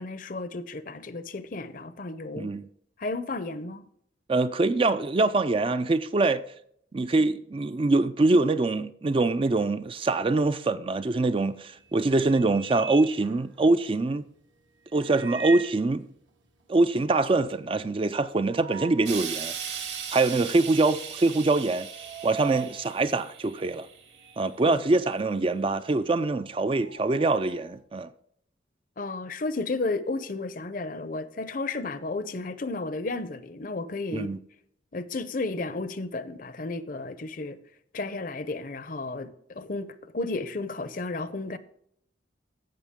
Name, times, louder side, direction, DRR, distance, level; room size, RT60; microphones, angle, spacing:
voice 1, 0.0-2.5 3.0-3.9 24.6-24.8 29.0-34.3 34.9-37.6 37.9-41.6, left 3 dB, 45° left, 0.6 m, -33 dB
voice 2, 2.3-2.7 4.3-6.4 6.9-14.3 14.9-16.1 16.7-19.8 20.1-21.9 22.2-23.9 24.4-28.1 34.1-34.4, right 2 dB, 30° right, 0.4 m, -24 dB
sound 1, 11.1-11.5 11.9-14.0 14.9-15.9 16.3-16.4 16.6-16.7 17.1-19.2 19.7-19.8 20.6-20.9 21.2-24.5 24.8-27.7, right 6 dB, 85° right, 1.6 m, -41 dB
Explosion, 19.1-24.4 25.2-25.3, right 7 dB, 70° right, 2.3 m, -38 dB
15.5 x 5.9 x 3.6 m
head